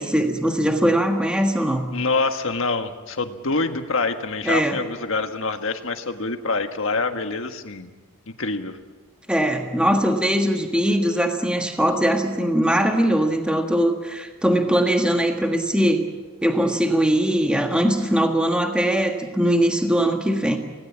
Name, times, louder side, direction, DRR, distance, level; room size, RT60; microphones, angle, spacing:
voice 1, 0.0-1.9 4.4-4.8 9.3-16.0 16.4-20.6, equal, 5° right, 3 dB, 1.6 m, -21 dB
voice 2, 1.9-7.9 8.3-8.8, left 3 dB, 65° left, 7 dB, 1.6 m, -26 dB
25.5 x 18.0 x 7.3 m, 1.3 s
head